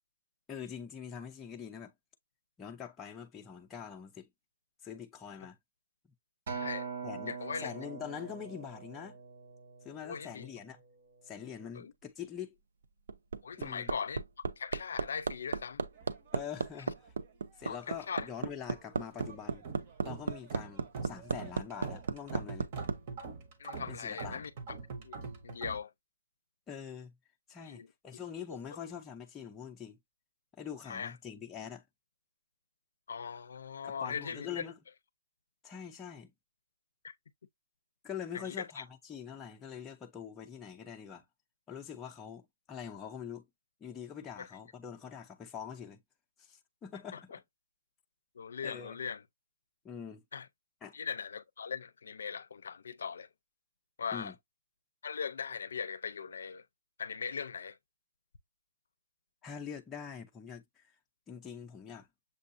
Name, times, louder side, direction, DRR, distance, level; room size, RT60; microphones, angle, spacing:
voice 1, 0.5-1.9 2.6-4.3 4.8-5.6 7.0-9.2 9.8-10.8 11.2-12.6 13.6-13.9 16.3-17.1 17.6-19.7 20.0-22.7 23.9-24.5 26.7-27.2 27.5-30.0 30.5-31.9 33.8-34.8 35.6-36.3 38.0-41.3 41.7-43.5 43.8-46.0 46.4-47.3 48.6-49.0 49.8-50.2 50.8-51.0 54.1-54.3 59.4-60.9 61.3-62.1, left 8 dB, 10° left, 0.5 m, -44 dB
voice 2, 6.5-6.9 7.3-7.7 10.0-10.5 11.7-11.9 13.4-14.2 14.6-15.8 17.6-18.3 23.6-24.5 25.0-25.9 27.7-27.9 28.5-28.6 30.9-31.1 33.1-34.6 37.0-37.1 38.3-38.8 44.4-44.5 47.1-47.4 48.3-49.2 50.3-50.5 50.9-53.3 54.0-54.3 55.0-56.6 57.0-57.8, left 6 dB, 75° left, 0.5 m, -39 dB
Acoustic guitar, 6.5-10.9 11.5-11.7, right 6 dB, 55° right, 1.4 m, -43 dB
Hammer, 12.8-23.0 24.3-24.4, right 5 dB, 80° right, 0.5 m, -34 dB
sound 1, 15.9-17.3 17.5-18.3 18.7-25.8, right 5 dB, 35° right, 1.0 m, -45 dB
6.8 x 2.5 x 2.6 m
hypercardioid pair, 165°, 0 cm